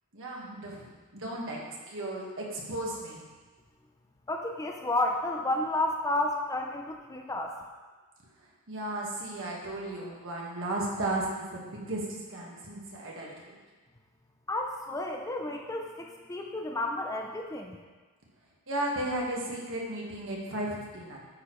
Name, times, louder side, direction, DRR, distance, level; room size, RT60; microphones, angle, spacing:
voice 1, 0.1-3.2 8.7-13.6 18.7-21.2, right 1 dB, 60° right, -3 dB, 1.6 m, -35 dB
voice 2, 4.3-7.5 14.5-17.8, left 2 dB, 15° left, 2 dB, 0.5 m, -31 dB
9.4 x 6.5 x 3.1 m, 1.4 s
head